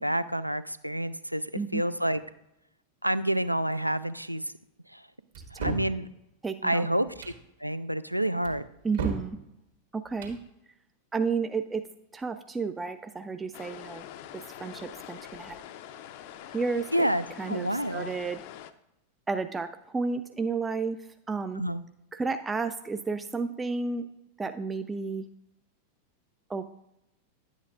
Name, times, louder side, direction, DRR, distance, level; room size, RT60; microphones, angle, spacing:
voice 1, 0.0-2.2 3.0-4.4 4.9-5.0 5.5-6.1 6.6-7.3 7.6-8.6 16.9-18.2 21.6-21.8, right 1 dB, 90° right, 14 dB, 0.3 m, -28 dB
sound 1, 5.3-5.9 7.1-7.4 8.4-9.3 10.1-10.4, right 5 dB, 60° right, 1.5 m, -34 dB
voice 2, 6.4-6.9 8.8-9.4 9.9-10.4 11.1-11.9 12.1-14.1 14.3-15.6 16.5-17.1 17.4-18.4 19.3-21.0 21.3-21.6 22.1-24.0 24.4-25.2 26.5-26.7, right 4 dB, 15° right, 8 dB, 0.3 m, -32 dB
sound 2, 13.5-18.7, left 11 dB, 50° left, 0.4 m, -44 dB
10.5 x 8.1 x 2.4 m, 0.85 s
figure-of-eight pair, 90°, 0 cm